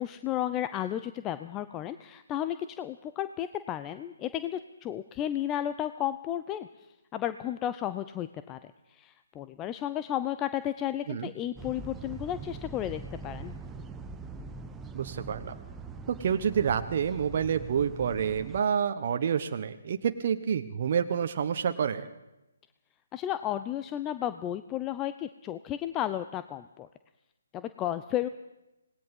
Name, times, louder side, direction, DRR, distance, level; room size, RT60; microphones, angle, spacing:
voice 1, 0.0-6.7 7.1-8.6 8.9-13.5 23.1-26.9 27.5-28.3, left 11 dB, 15° left, 12 dB, 0.6 m, -33 dB
sound 1, 11.6-18.6, right 4 dB, 10° right, 1.1 m, -43 dB
voice 2, 14.9-15.5 16.1-22.1, right 7 dB, 45° right, 7 dB, 1.1 m, -28 dB
26.5 x 19.5 x 5.6 m, 0.97 s
figure-of-eight pair, 140°, 0 cm